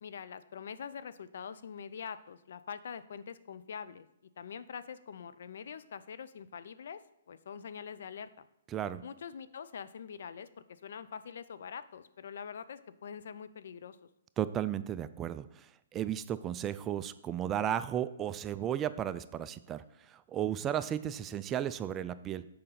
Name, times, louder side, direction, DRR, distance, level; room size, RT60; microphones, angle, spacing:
voice 1, 0.0-4.1 4.4-7.0 7.3-8.5 9.0-14.0, left 7 dB, 65° left, 13 dB, 0.5 m, -44 dB
voice 2, 8.7-9.0 14.4-22.5, right 10 dB, 20° right, 14 dB, 0.3 m, -34 dB
6.7 x 5.1 x 5.7 m, 0.83 s
hypercardioid pair, 135°, 0 cm